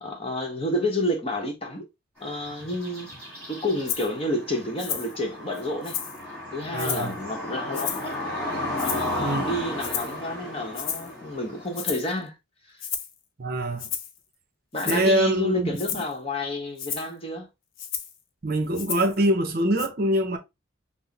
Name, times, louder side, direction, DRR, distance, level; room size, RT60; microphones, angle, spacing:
voice 1, 0.0-1.9 2.2-6.0 6.5-8.2 8.8-12.3 14.7-17.5, left 1 dB, 30° left, 0.9 m, -30 dB
sound 1, 2.2-11.9, left 1 dB, 5° left, 2.0 m, -34 dB
Rattle (instrument), 3.9-4.1 4.8-5.1 5.5-6.2 6.8-7.1 7.7-8.1 8.8-9.2 9.8-10.2 10.7-11.1 11.7-12.1 12.8-13.1 13.8-14.2 14.7-15.1 15.7-16.1 16.8-17.1 17.8-18.2 18.7-19.2 19.8-19.9, left 8 dB, 80° left, 0.7 m, -32 dB
voice 2, 6.7-7.1 9.2-9.5 13.4-13.9 14.9-15.8 18.4-20.4, right 1 dB, 45° right, 0.6 m, -24 dB
6.0 x 2.0 x 2.8 m
head